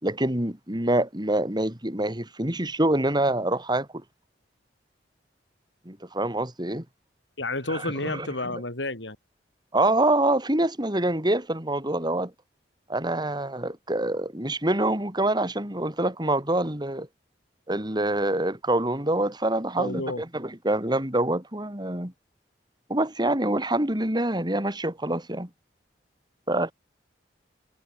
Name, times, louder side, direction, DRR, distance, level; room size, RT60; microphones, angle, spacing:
voice 1, 0.0-3.9 5.8-6.8 7.7-8.3 8.5-8.6 9.7-12.3 12.9-17.1 17.7-22.1 22.9-25.5 26.5-26.7, right 1 dB, 25° right, 4.5 m, -26 dB
voice 2, 7.4-9.2 19.8-20.2, left 2 dB, 90° left, 5.6 m, -30 dB
head